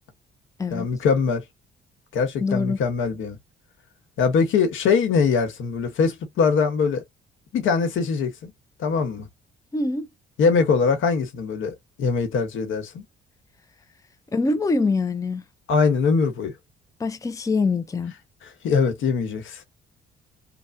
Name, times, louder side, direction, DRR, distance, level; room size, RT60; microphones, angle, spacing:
voice 1, 0.7-1.4 2.1-3.4 4.2-7.0 7.5-8.5 8.8-9.3 10.4-13.0 15.7-16.5 18.6-19.6, left 5 dB, 80° left, 1.1 m, -22 dB
voice 2, 2.4-2.8 9.7-10.1 14.3-15.4 17.0-18.1, left 3 dB, 15° left, 0.5 m, -24 dB
3.4 x 2.2 x 2.6 m
cardioid pair, 90°, 20 cm